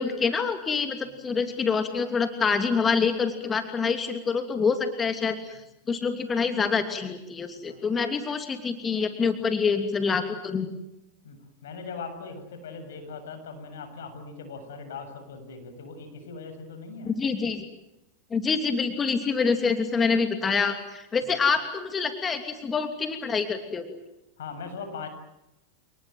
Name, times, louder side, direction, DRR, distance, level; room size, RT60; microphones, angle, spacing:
voice 1, 0.0-5.6 5.9-10.7 17.0-17.6 18.3-24.0, left 5 dB, 20° left, 7 dB, 2.9 m, -26 dB
voice 2, 11.2-17.1 21.2-21.3 24.4-25.1, left 4 dB, 80° left, 8 dB, 7.7 m, -40 dB
30.0 x 19.5 x 9.3 m, 0.91 s
hypercardioid pair, 115°, 0 cm